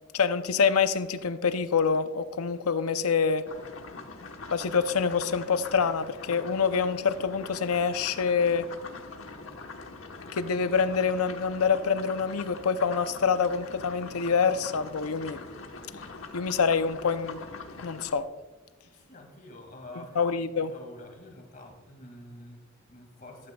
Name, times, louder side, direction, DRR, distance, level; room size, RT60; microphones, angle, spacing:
voice 1, 0.1-3.4 4.5-8.7 10.3-15.4 16.3-17.4 17.8-18.3 20.0-20.7, left 5 dB, 85° left, 11 dB, 0.6 m, -26 dB
sound 1, 3.4-18.1, left 3 dB, 65° left, 1.1 m, -43 dB
voice 2, 18.8-23.5, left 1 dB, 40° left, 3 dB, 2.1 m, -48 dB
15.0 x 12.0 x 2.3 m, 1.3 s
head